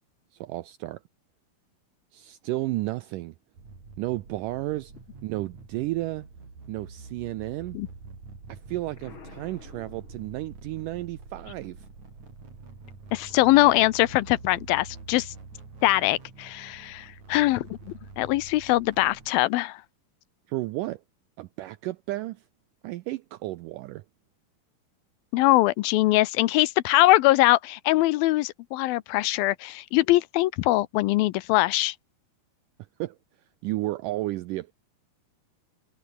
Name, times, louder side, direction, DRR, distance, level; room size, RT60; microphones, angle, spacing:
voice 1, 0.3-1.0 2.1-3.4 4.0-4.9 5.2-6.3 6.7-7.8 8.5-11.9 20.5-21.0 21.4-22.4 22.8-24.1 33.0-33.2 33.6-34.7, right 18 dB, 80° right, 1.9 m, -32 dB
sound 1, 3.6-19.3, right 4 dB, 50° right, 7.3 m, -46 dB
Explosion, 9.0-10.8, left 6 dB, 35° left, 2.9 m, -50 dB
voice 2, 13.1-15.3 15.8-19.8 25.3-32.0, left 18 dB, 80° left, 2.4 m, -22 dB
omnidirectional pair, 4.4 m